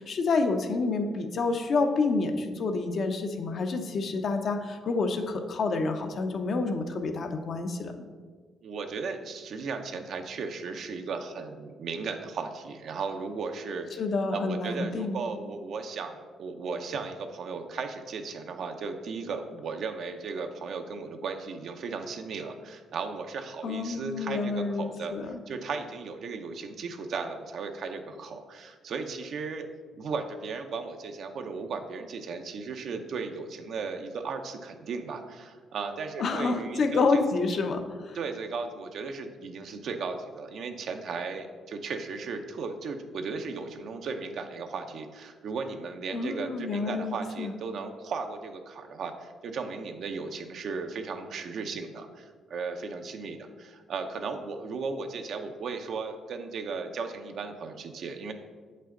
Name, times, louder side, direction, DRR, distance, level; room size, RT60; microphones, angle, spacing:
voice 1, 0.0-7.9 14.0-15.2 23.6-25.4 36.2-38.2 46.1-47.5, left 3 dB, 55° left, 5 dB, 0.7 m, -28 dB
voice 2, 8.6-14.0 14.3-25.1 25.5-29.7 29.9-37.2 38.1-58.3, right 4 dB, 65° right, 6 dB, 0.7 m, -36 dB
7.4 x 5.5 x 3.8 m, 1.5 s
cardioid pair, 90°, 0 cm